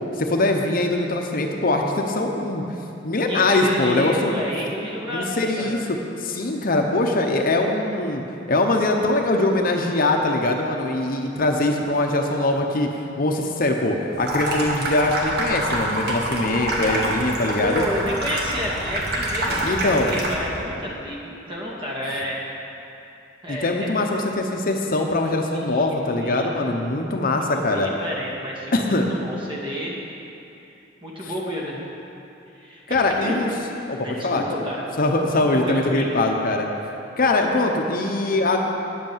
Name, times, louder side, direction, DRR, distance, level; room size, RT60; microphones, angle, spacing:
voice 1, 0.2-2.6 3.0-4.3 5.1-8.2 8.5-12.9 13.2-17.8 19.6-20.2 23.5-27.9 28.7-29.1 31.2-31.3 32.9-33.5 33.9-34.4 35.0-36.7 37.2-38.6, left 2 dB, 50° left, 2 dB, 0.8 m, -22 dB
voice 2, 3.3-5.7 16.8-22.4 23.4-23.9 25.5-26.5 27.5-28.9 29.2-29.9 31.0-31.8 32.5-33.4 34.0-34.8 35.5-36.2, equal, 25° right, -4 dB, 2.3 m, -30 dB
Water tap faucet / Sink (filling or washing), 14.1-20.6, right 1 dB, 60° right, 1.8 m, -26 dB
10.0 x 8.1 x 7.3 m, 2.8 s
head